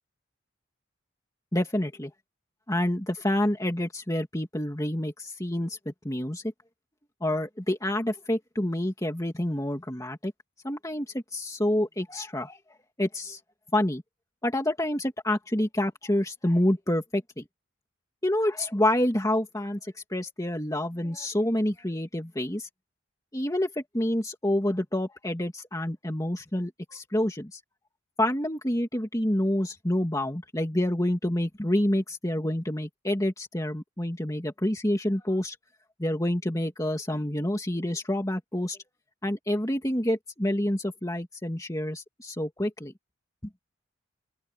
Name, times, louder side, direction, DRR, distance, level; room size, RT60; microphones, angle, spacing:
voice 1, 1.5-2.1 2.7-6.4 7.2-10.3 10.6-12.6 13.0-13.4 13.7-14.0 14.4-17.4 18.2-22.7 23.3-27.6 28.2-35.6 36.0-38.8 39.2-42.9, left 1 dB, 15° left, 2.4 m, -28 dB
open air
head